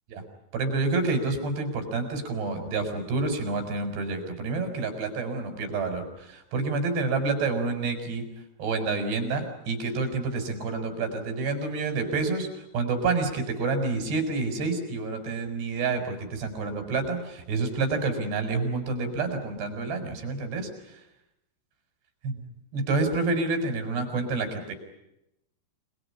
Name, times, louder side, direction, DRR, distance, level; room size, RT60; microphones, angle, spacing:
voice 1, 0.5-8.3 8.6-20.7 22.2-22.3 22.7-24.7, right 3 dB, 85° right, 7 dB, 6.7 m, -28 dB
28.5 x 21.0 x 9.8 m, 0.85 s
omnidirectional pair, 4.7 m